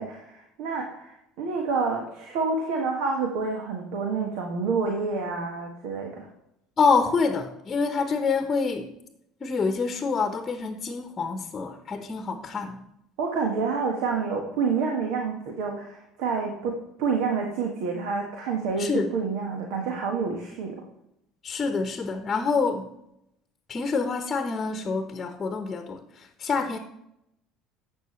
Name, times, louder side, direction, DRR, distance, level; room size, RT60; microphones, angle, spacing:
voice 1, 0.0-6.3 13.2-20.8, right 4 dB, 65° right, 2 dB, 1.5 m, -28 dB
voice 2, 6.8-8.9 9.4-12.9 18.8-19.1 21.4-22.9 23.7-26.8, left 4 dB, 30° left, 7 dB, 1.1 m, -26 dB
12.0 x 7.8 x 3.2 m, 0.80 s
figure-of-eight pair, 65°, 0 cm